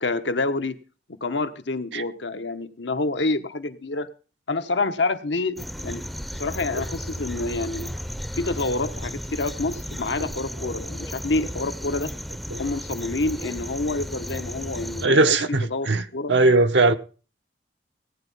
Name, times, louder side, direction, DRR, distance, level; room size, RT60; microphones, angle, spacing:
voice 1, 0.0-0.8 1.1-4.1 4.5-6.0 6.3-7.9 8.3-12.1 12.6-15.9 16.1-16.3, left 3 dB, 85° left, 1.1 m, -27 dB
sound 1, 5.6-15.1, equal, ahead, 0.5 m, -34 dB
voice 2, 15.0-16.9, right 3 dB, 80° right, 1.0 m, -20 dB
17.5 x 9.3 x 5.5 m
head